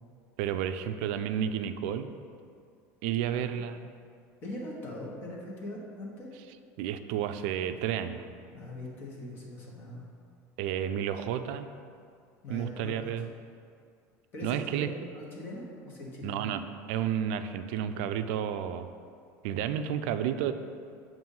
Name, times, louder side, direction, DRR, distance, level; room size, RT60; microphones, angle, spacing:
voice 1, 0.4-2.1 3.0-3.9 6.8-8.2 10.6-11.7 12.5-13.3 14.4-14.9 16.2-18.9 19.4-20.5, right 9 dB, 75° right, 10 dB, 0.3 m, -31 dB
voice 2, 4.4-6.3 8.5-10.0 12.4-12.9 14.3-16.4, left 1 dB, 30° left, -3 dB, 1.1 m, -41 dB
7.6 x 2.6 x 5.4 m, 2.3 s
cardioid pair, 175°, 7 cm